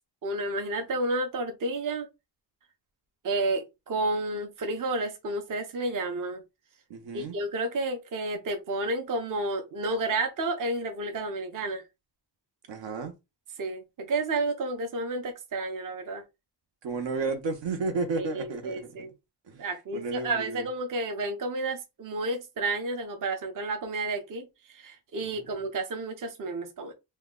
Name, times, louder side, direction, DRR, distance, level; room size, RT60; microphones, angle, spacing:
voice 1, 0.2-2.1 3.2-6.4 7.1-11.8 13.6-16.2 18.2-19.1 19.6-26.9, right 2 dB, 45° right, 0.7 m, -31 dB
voice 2, 6.9-7.4 12.7-13.1 16.8-19.1 19.5-19.6 19.9-20.7 25.2-25.3, right 3 dB, 75° right, 0.9 m, -32 dB
2.9 x 2.2 x 3.6 m
wide cardioid pair, 170°, 45 cm